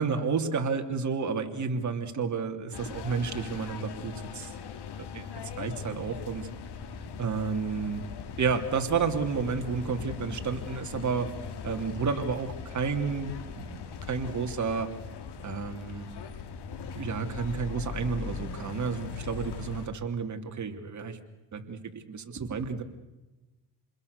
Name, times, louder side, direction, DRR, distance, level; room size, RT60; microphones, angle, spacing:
voice 1, 0.0-4.5 5.0-5.3 5.6-6.5 7.2-8.0 8.4-11.3 11.6-14.9 15.4-16.1 16.9-21.2 21.5-22.8, right 5 dB, 40° right, 5 dB, 3.1 m, -31 dB
sound 1, 2.7-19.9, left 6 dB, 65° left, 3.2 m, -40 dB
28.5 x 21.5 x 6.8 m, 1.1 s
cardioid pair, 95°, 43 cm